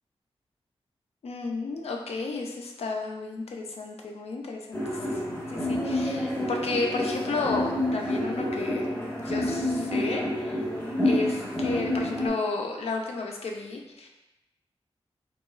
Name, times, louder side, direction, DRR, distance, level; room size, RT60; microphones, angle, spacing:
voice 1, 1.2-5.2 5.5-8.9 9.2-10.6 11.0-14.1, left 3 dB, 75° left, 1 dB, 0.4 m, -32 dB
sound 1, 4.7-12.3, left 1 dB, 15° left, 0.8 m, -28 dB
2.9 x 2.3 x 2.3 m, 0.95 s
wide cardioid pair, 75°, 11 cm